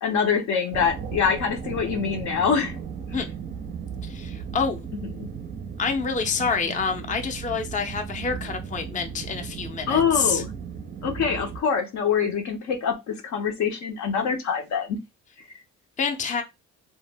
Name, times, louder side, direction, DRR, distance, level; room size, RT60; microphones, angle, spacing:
voice 1, 0.0-2.8 5.2-5.3 9.9-10.5 11.0-15.0, left 6 dB, 70° left, 0.7 m, -25 dB
sound 1, 0.7-11.6, right 7 dB, 30° right, 0.4 m, -36 dB
voice 2, 4.0-4.8 5.8-10.4 16.0-16.4, left 5 dB, 25° left, 0.5 m, -27 dB
2.0 x 2.0 x 3.3 m
cardioid pair, 90°, 30 cm